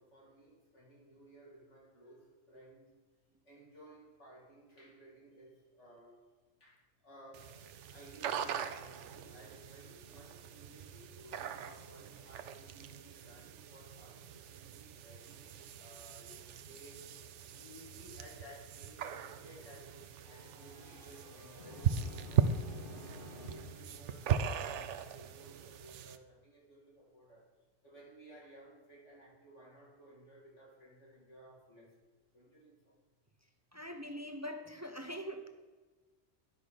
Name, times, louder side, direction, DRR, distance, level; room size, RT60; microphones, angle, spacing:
voice 1, 0.0-2.9 3.4-6.3 6.6-17.1 17.5-22.5 23.4-27.5 27.8-31.9 32.3-33.0, right 1 dB, 70° left, -5 dB, 3.6 m, -57 dB
sound 1, 7.3-26.2, right 7 dB, 70° right, 1.0 m, -39 dB
sound 2, 20.2-25.0, left 1 dB, 45° left, 1.3 m, -51 dB
voice 2, 33.7-35.5, equal, 20° right, 6 dB, 0.5 m, -43 dB
11.0 x 5.7 x 6.6 m, 1.3 s
omnidirectional pair, 1.3 m